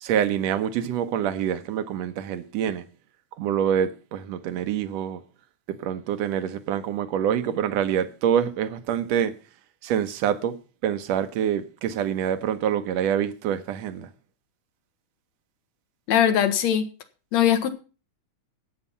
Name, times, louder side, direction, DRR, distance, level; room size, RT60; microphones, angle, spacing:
voice 1, 0.0-2.9 3.4-5.2 5.7-9.4 9.8-14.1, right 9 dB, 70° right, 2.1 m, -26 dB
voice 2, 16.1-16.9 17.3-17.7, left 10 dB, 70° left, 2.5 m, -20 dB
13.0 x 8.8 x 5.6 m
omnidirectional pair, 3.3 m